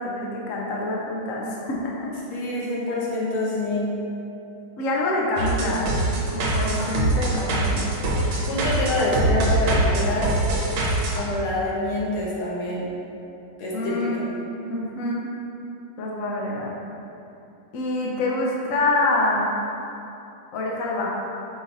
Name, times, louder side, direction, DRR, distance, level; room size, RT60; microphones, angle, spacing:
voice 1, 0.0-2.1 4.8-5.9 6.3-7.9 13.7-14.2 14.7-15.3 16.0-16.7 17.7-19.5 20.5-21.1, left 2 dB, 60° left, -2 dB, 0.9 m, -26 dB
voice 2, 2.3-3.9 8.5-10.3 11.1-12.9 13.6-14.0, left 2 dB, 80° left, -6 dB, 2.0 m, -26 dB
sound 1, 5.4-11.2, right 2 dB, 75° right, 1.6 m, -23 dB
5.6 x 4.6 x 3.9 m, 2.8 s
omnidirectional pair, 2.3 m